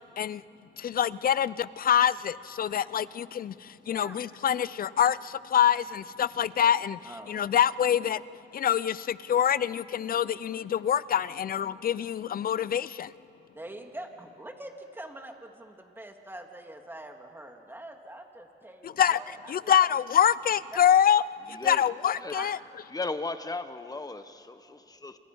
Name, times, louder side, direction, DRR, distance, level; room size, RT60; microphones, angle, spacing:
voice 1, 0.8-8.2 8.5-13.1 18.8-19.2 19.5-21.2 21.6-22.6, left 9 dB, 45° left, 0.6 m, -25 dB
voice 2, 3.8-4.2 7.0-7.4 13.5-20.0 20.7-20.9 22.3-22.6, right 1 dB, 10° right, 2.6 m, -44 dB
voice 3, 21.5-21.9 22.2-22.4 22.9-25.2, left 3 dB, 20° left, 1.4 m, -36 dB
27.5 x 26.5 x 5.5 m
cardioid pair, 90°, 20 cm